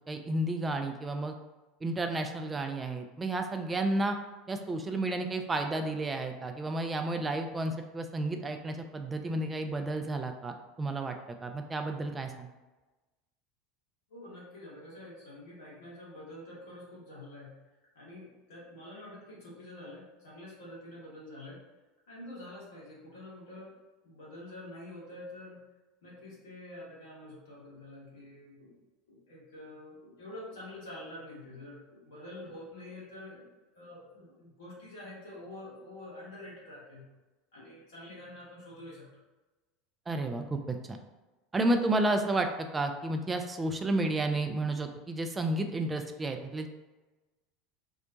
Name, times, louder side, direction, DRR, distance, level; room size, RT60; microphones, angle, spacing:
voice 1, 0.1-1.3 1.8-4.2 4.5-11.2 11.4-12.5 40.1-41.0 41.5-46.7, right 2 dB, 20° right, 5 dB, 0.3 m, -31 dB
voice 2, 14.1-17.6 17.9-21.6 22.1-23.8 24.0-25.6 26.0-28.8 29.1-33.5 33.7-37.1 37.5-39.1, left 1 dB, 65° left, -8 dB, 1.3 m, -47 dB
2.7 x 2.1 x 2.6 m, 1.2 s
figure-of-eight pair, 75°, 0 cm